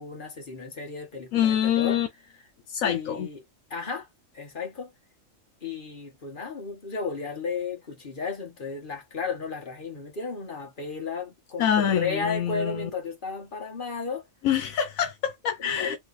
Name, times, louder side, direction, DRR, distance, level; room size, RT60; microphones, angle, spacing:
voice 1, 0.0-2.0 2.8-3.4 3.7-4.1 4.3-4.9 5.6-14.3 15.6-16.0, left 5 dB, 40° left, 1.2 m, -34 dB
voice 2, 1.3-2.1 2.7-3.3 11.6-12.9 14.4-16.0, left 9 dB, 85° left, 1.1 m, -25 dB
3.8 x 2.8 x 2.5 m
omnidirectional pair, 1.4 m